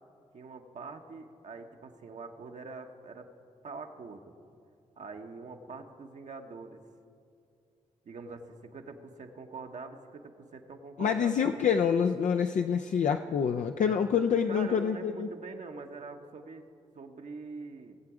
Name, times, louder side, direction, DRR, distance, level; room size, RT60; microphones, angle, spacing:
voice 1, 0.3-3.3 3.6-4.3 5.0-6.8 8.0-11.8 14.5-16.7 16.9-18.0, right 4 dB, 60° right, 4 dB, 1.0 m, -44 dB
voice 2, 11.0-15.3, left 7 dB, 60° left, 5 dB, 0.5 m, -27 dB
18.5 x 7.6 x 4.9 m, 2.5 s
supercardioid pair, 45°, 14 cm